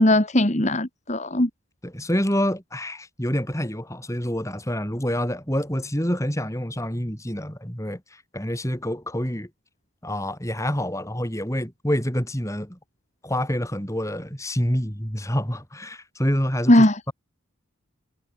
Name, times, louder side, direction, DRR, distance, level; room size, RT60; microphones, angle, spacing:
voice 1, 0.0-1.5 16.7-17.0, left 1 dB, 35° left, 2.0 m, -18 dB
voice 2, 1.8-8.0 8.3-9.5 10.0-12.8 13.2-17.1, equal, 15° left, 5.8 m, -27 dB
head